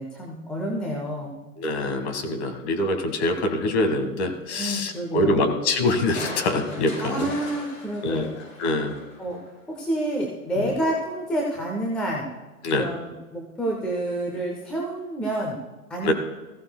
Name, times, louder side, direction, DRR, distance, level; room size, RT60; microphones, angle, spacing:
voice 1, 0.0-1.4 4.5-5.5 7.0-8.3 9.2-9.4 9.7-12.3 12.7-15.6 15.9-16.1, right 1 dB, ahead, -1 dB, 0.4 m, -29 dB
voice 2, 1.6-7.3 8.0-9.0 12.6-12.9 16.0-16.1, left 2 dB, 45° left, 7 dB, 1.8 m, -24 dB
Crushing, 6.1-9.5 10.0-10.1, left 1 dB, 65° left, 4.6 m, -38 dB
16.5 x 14.5 x 2.2 m, 1.1 s
hypercardioid pair, 120°, 45 cm